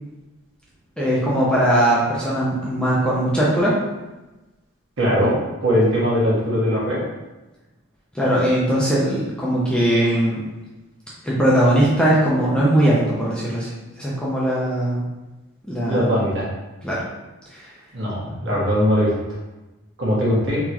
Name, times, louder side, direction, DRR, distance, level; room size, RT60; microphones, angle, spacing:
voice 1, 1.0-3.7 8.1-10.4 11.2-13.7 14.0-15.1 15.7-16.1 16.8-17.0 17.5-17.7, right 1 dB, 5° left, -7 dB, 0.7 m, -19 dB
voice 2, 5.0-5.3 5.6-7.0 15.8-16.5 17.9-19.1 20.0-20.6, equal, 60° right, -7 dB, 1.5 m, -20 dB
3.8 x 3.6 x 3.0 m, 1.1 s
head